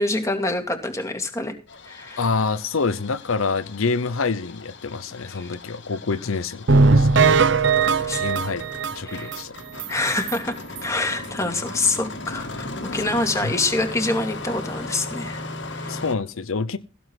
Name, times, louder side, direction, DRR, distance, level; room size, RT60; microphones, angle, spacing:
voice 1, 0.0-1.5 1.9-2.2 5.3-5.5 8.1-8.2 9.1-9.3 9.9-16.0, left 2 dB, 15° left, 2.3 m, -26 dB
Engine starting, 1.7-16.2, left 2 dB, 55° left, 2.0 m, -37 dB
voice 2, 2.2-7.3 7.8-8.6 8.9-9.5 13.4-13.5 15.9-16.8, left 4 dB, 75° left, 0.7 m, -27 dB
sound 1, 6.7-9.4 9.8-9.9 10.3-10.4 10.8-10.9, right 4 dB, 55° right, 0.8 m, -18 dB
16.0 x 7.4 x 6.1 m
head